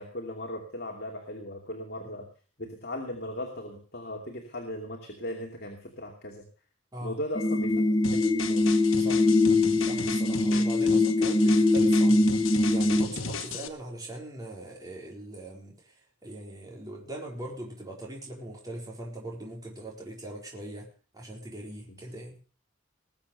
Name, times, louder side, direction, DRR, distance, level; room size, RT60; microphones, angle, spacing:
voice 1, 0.0-2.3 2.6-6.4 7.0-7.8 8.1-8.7, left 1 dB, 55° left, 1 dB, 2.7 m, -37 dB
sound 1, 7.3-13.0, left 2 dB, 20° left, 0.9 m, -23 dB
sound 2, 8.0-13.7, left 5 dB, 80° left, 1.3 m, -36 dB
voice 2, 9.0-9.3 9.9-15.9 16.2-20.9 21.1-22.4, right 1 dB, 20° right, -2 dB, 4.2 m, -41 dB
20.5 x 7.2 x 6.7 m, 0.40 s
head